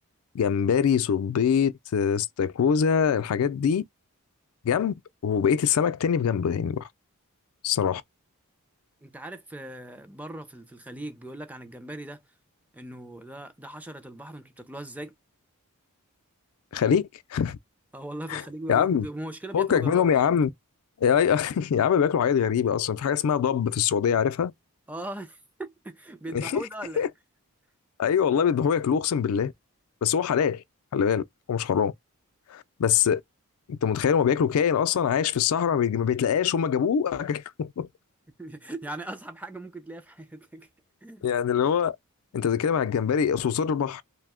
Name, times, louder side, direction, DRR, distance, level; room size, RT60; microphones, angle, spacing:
voice 1, 0.3-3.8 4.7-4.9 5.2-6.9 7.6-8.0 16.7-17.0 17.3-17.6 18.3-18.4 18.7-19.1 19.5-20.5 21.0-24.5 26.3-26.6 27.0-27.1 28.0-29.5 30.0-30.6 30.9-31.2 31.5-31.9 32.5-33.2 33.7-37.9 41.2-41.9 42.3-44.0, left 7 dB, 75° left, 0.3 m, -23 dB
voice 2, 9.0-12.2 12.7-15.1 17.9-20.1 24.9-27.1 38.3-40.7 41.0-41.3, right 1 dB, 5° right, 0.4 m, -39 dB
2.7 x 2.1 x 3.5 m
head